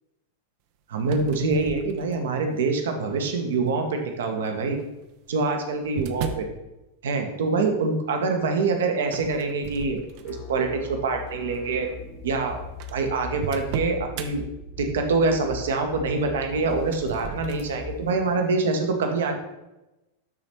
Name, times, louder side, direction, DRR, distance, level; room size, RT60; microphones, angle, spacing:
voice 1, 0.9-4.8 5.3-6.5 7.0-11.9 12.2-12.6 12.9-14.4 14.8-19.3, right 3 dB, 60° right, 4 dB, 1.1 m, -25 dB
sound 1, 1.0-2.5 3.1-3.6 4.6-6.6 9.0-10.6 11.1-11.3 12.1-12.2 12.4-12.5 12.8-14.3 16.4-17.7, right 6 dB, 45° right, 0.6 m, -36 dB
sound 2, 10.2-18.2, left 4 dB, 45° left, 0.9 m, -40 dB
12.0 x 4.1 x 3.1 m, 0.97 s
figure-of-eight pair, 90°, 0 cm